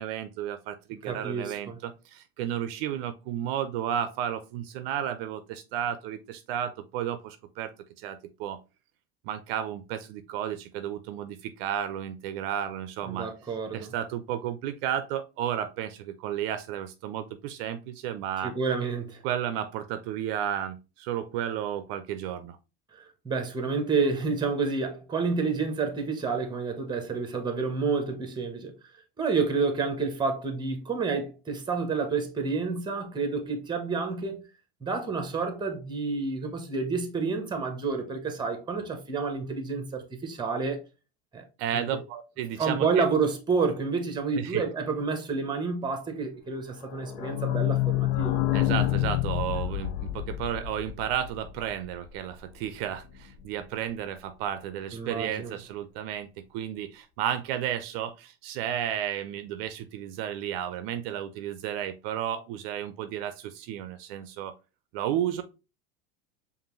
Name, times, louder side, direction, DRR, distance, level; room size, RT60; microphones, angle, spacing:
voice 1, 0.0-7.7 8.0-8.6 9.2-13.3 13.7-18.5 19.2-22.6 41.6-43.0 44.4-44.6 48.5-64.5 64.9-65.4, right 10 dB, 65° right, 0.5 m, -33 dB
voice 2, 1.0-1.8 13.0-13.9 18.4-19.2 22.9-28.7 29.2-34.4 34.8-40.8 41.3-41.4 41.7-41.9 42.6-48.4 54.9-55.5, right 4 dB, 15° right, 1.0 m, -29 dB
sound 1, 46.8-52.4 52.7-52.8 53.0-53.1 53.3-53.4, left 14 dB, 70° left, 0.6 m, -28 dB
5.1 x 2.5 x 3.1 m
supercardioid pair, 110°, 31 cm